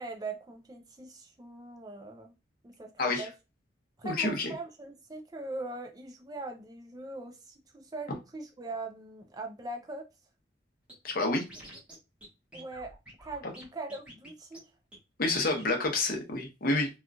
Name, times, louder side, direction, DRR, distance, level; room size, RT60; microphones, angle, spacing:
voice 1, 0.0-2.3 2.6-3.3 4.0-10.1 12.5-12.9 13.2-14.7, right 2 dB, 20° right, 0.4 m, -41 dB
voice 2, 4.0-4.5 11.0-11.4 15.2-16.9, left 2 dB, 55° left, 0.8 m, -28 dB
Scratching (performance technique), 10.9-11.0 11.2-12.0 12.2-12.3 12.5-13.6 13.9-14.3 14.5-14.6 14.9-15.0 15.2-15.7, right 1 dB, 5° right, 1.0 m, -48 dB
2.8 x 2.4 x 2.3 m
head